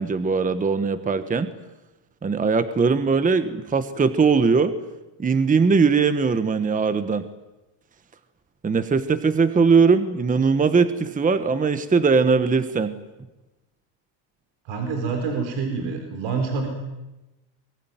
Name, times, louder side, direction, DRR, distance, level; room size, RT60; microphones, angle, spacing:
voice 1, 0.0-1.5 2.2-4.7 5.2-7.2 8.6-13.0, right 5 dB, 15° right, 11 dB, 1.2 m, -20 dB
voice 2, 14.6-16.7, right 4 dB, 70° right, 5 dB, 4.5 m, -27 dB
24.5 x 22.5 x 9.3 m, 1.0 s
cardioid pair, 135°, 48 cm